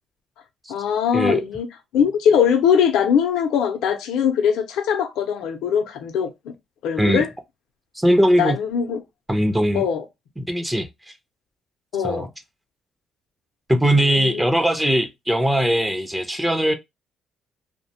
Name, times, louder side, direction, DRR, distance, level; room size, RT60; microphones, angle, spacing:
voice 1, 0.7-1.7 1.9-6.5 6.8-7.3 8.4-9.0 9.7-10.0 11.9-12.3 13.9-14.4, left 7 dB, 90° left, 0.5 m, -21 dB
voice 2, 8.0-8.6 9.3-9.9 10.4-11.1 12.0-12.3 13.7-16.7, equal, 10° right, 0.4 m, -20 dB
2.5 x 2.1 x 2.7 m
cardioid pair, 90°, 0 cm